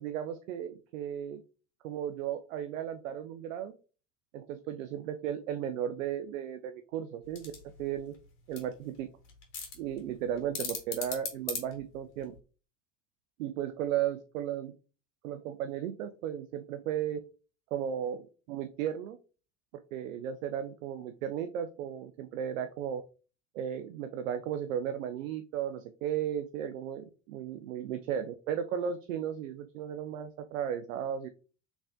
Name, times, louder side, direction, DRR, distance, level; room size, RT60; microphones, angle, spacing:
voice 1, 0.0-1.4 1.8-3.7 4.3-7.5 7.8-8.1 8.5-9.1 9.8-12.3 13.4-14.8 15.2-17.2 17.7-19.2 19.9-23.0 23.5-31.3, right 9 dB, 80° right, 8 dB, 0.5 m, -35 dB
sound 1, 7.2-12.4, left 5 dB, 70° left, 1.6 m, -41 dB
4.0 x 3.4 x 2.6 m, 0.35 s
hypercardioid pair, 70°, 39 cm